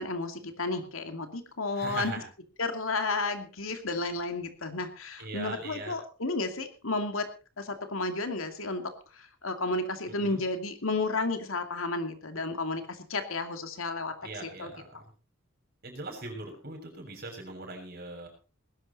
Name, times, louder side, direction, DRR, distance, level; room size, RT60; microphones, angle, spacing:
voice 1, 0.0-2.1 2.6-7.3 7.6-8.8 9.1-14.1 14.4-14.7, left 3 dB, 75° left, 7 dB, 2.5 m, -32 dB
voice 2, 1.7-2.2 5.2-5.9 10.2-10.4 14.2-15.0 15.8-18.3, right 2 dB, 50° right, 3 dB, 6.8 m, -40 dB
19.5 x 12.0 x 4.2 m, 0.35 s
head